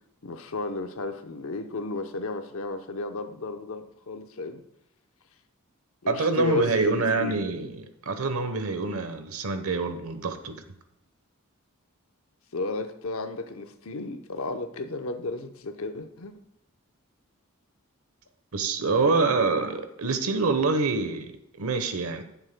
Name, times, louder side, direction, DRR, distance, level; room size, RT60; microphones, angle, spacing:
voice 1, 0.2-4.6 6.0-7.3 12.5-16.3 19.0-19.3, left 3 dB, 75° left, 7 dB, 0.8 m, -33 dB
voice 2, 6.1-10.6 18.5-22.2, right 3 dB, 85° right, 8 dB, 1.0 m, -26 dB
16.5 x 7.2 x 2.2 m, 0.82 s
head